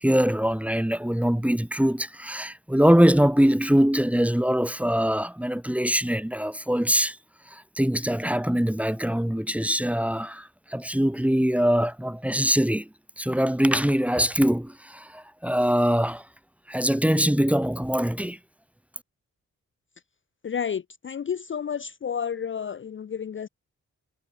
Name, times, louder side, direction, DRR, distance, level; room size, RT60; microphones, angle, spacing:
voice 1, 0.0-7.2 7.5-12.9 13.2-16.2 16.7-18.4, equal, 5° right, 1.0 m, -23 dB
voice 2, 20.4-23.5, left 7 dB, 40° left, 0.5 m, -31 dB
supercardioid pair, 50°, 33 cm